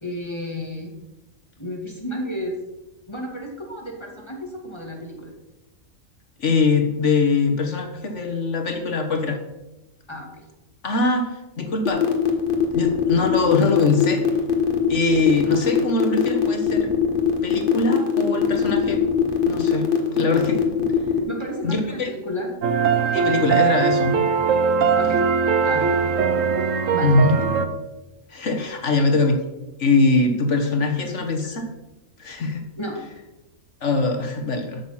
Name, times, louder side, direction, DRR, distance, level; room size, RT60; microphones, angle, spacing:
voice 1, 0.0-0.9 1.6-2.5 3.1-5.3 10.1-10.3 21.2-22.5 24.9-25.2 25.7-25.9 26.9-27.5 32.8-33.0, equal, 20° left, 0 dB, 2.3 m, -32 dB
voice 2, 6.4-9.4 10.8-12.1 12.7-14.2 14.9-16.9 17.4-19.0 19.5-19.9 20.1-20.6 21.6-22.1 23.1-24.2 27.0-27.4 28.3-29.4 29.8-31.6 32.2-32.6 33.8-34.8, left 3 dB, 65° left, 4 dB, 1.7 m, -22 dB
sound 1, 11.9-21.2, left 7 dB, 45° left, 1.5 m, -21 dB
sound 2, 22.6-27.7, right 6 dB, 80° right, 1.3 m, -20 dB
12.5 x 6.7 x 5.7 m, 1.0 s
omnidirectional pair, 1.3 m